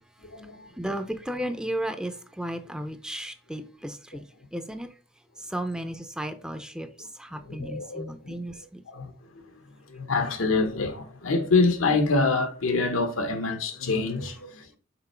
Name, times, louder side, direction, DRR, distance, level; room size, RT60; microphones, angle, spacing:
voice 1, 0.2-0.7 7.3-8.4 8.9-9.6 9.9-14.8, left 3 dB, 85° left, 1.1 m, -26 dB
voice 2, 0.8-4.3 4.5-4.9 5.4-8.8, right 1 dB, 5° right, 0.5 m, -34 dB
5.9 x 4.4 x 4.3 m
head